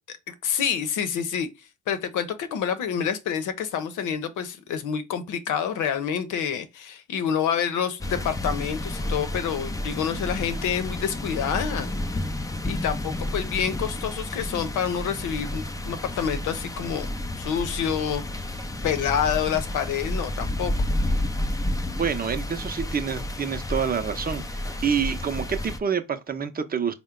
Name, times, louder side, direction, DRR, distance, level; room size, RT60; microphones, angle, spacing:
voice 1, 0.3-1.5 1.9-12.0 12.6-17.1 17.4-18.2 18.8-20.7, left 8 dB, 80° left, 0.8 m, -27 dB
sound 1, 8.0-25.8, left 1 dB, 10° left, 0.5 m, -31 dB
voice 2, 21.9-26.9, right 7 dB, 30° right, 0.7 m, -27 dB
4.4 x 2.2 x 3.7 m
cardioid pair, 90°, 30 cm